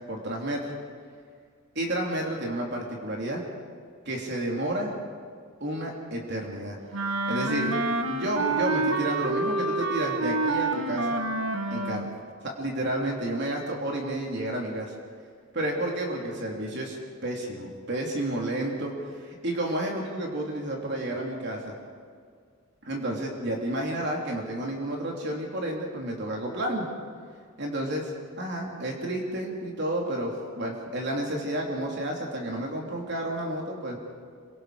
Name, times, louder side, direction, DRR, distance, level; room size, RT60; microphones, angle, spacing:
voice 1, 0.1-0.7 1.7-3.4 4.0-4.9 5.6-7.7 8.1-11.2 11.7-12.1 12.4-14.9 15.5-17.0 17.2-21.7 22.8-26.9 27.6-28.1 28.4-34.0, right 1 dB, 55° right, -1 dB, 3.3 m, -31 dB
Wind instrument woodwind instrument, 6.9-12.2, right 2 dB, 70° right, 1.4 m, -28 dB
27.5 x 24.5 x 5.1 m, 2.1 s
head